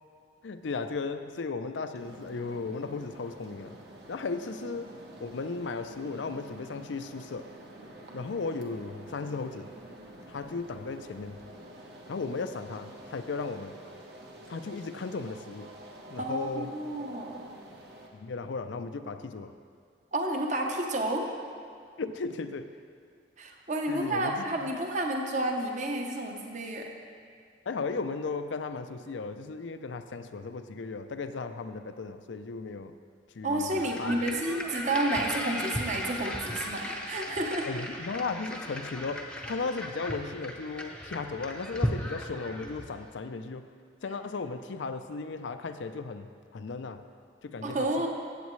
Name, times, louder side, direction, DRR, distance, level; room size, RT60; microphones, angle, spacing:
voice 1, 0.4-3.8 4.1-4.9 5.2-7.5 8.1-9.7 10.3-11.4 12.1-13.8 14.5-15.7 16.1-16.8 18.1-19.6 22.0-22.7 23.9-24.7 27.7-32.9 33.3-34.2 37.7-43.7 44.0-47.0 47.4-48.1, left 4 dB, 80° left, 10 dB, 0.5 m, -36 dB
sound 1, 1.9-18.1, right 1 dB, 60° right, 1.2 m, -48 dB
voice 2, 16.2-17.4 20.1-21.3 23.4-26.9 33.4-37.7 47.6-48.1, right 1 dB, 40° right, 2 dB, 0.9 m, -30 dB
sound 2, 33.7-43.0, left 1 dB, 5° left, 0.6 m, -36 dB
15.0 x 8.2 x 3.2 m, 2.2 s
head